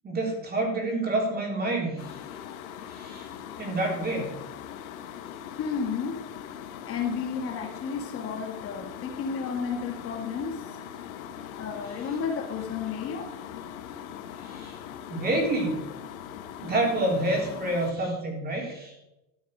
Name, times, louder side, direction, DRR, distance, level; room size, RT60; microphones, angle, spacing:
voice 1, 0.0-2.2 2.9-3.3 3.6-4.3 14.4-14.8 15.1-15.8 16.6-19.0, right 2 dB, 25° right, 1 dB, 3.8 m, -28 dB
sound 1, 2.0-17.9, left 9 dB, 85° left, 1.6 m, -41 dB
voice 2, 5.6-6.2 6.8-10.8 11.6-13.4, left 6 dB, 35° left, 3 dB, 1.8 m, -32 dB
13.0 x 7.3 x 6.6 m, 0.93 s
supercardioid pair, 140°, 41 cm